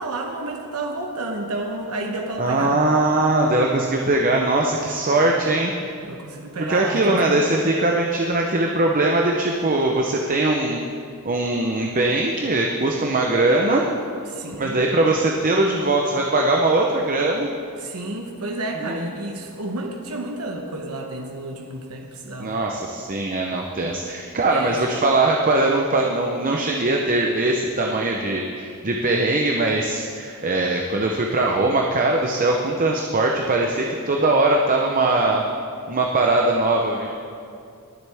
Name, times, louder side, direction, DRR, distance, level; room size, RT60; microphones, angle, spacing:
voice 1, 0.0-2.8 5.2-5.4 6.0-7.5 14.3-14.8 17.8-22.6 24.4-24.8, right 2 dB, 85° right, 2 dB, 1.1 m, -31 dB
voice 2, 2.4-5.7 6.7-10.8 11.2-13.9 14.6-17.5 18.8-19.1 22.4-35.4 35.9-37.1, right 2 dB, 40° right, 1 dB, 0.7 m, -21 dB
22.0 x 7.6 x 3.5 m, 2.4 s
head